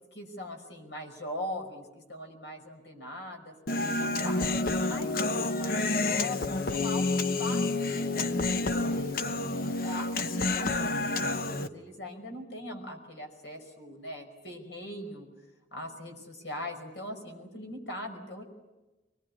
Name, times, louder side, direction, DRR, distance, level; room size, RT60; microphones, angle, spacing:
voice 1, 0.1-3.5 3.9-9.2 9.8-15.3 15.7-18.4, left 1 dB, 90° left, 4 dB, 5.4 m, -41 dB
Human voice, 3.7-11.7, left 2 dB, 55° left, 1.0 m, -29 dB
24.0 x 21.0 x 9.8 m, 1.1 s
head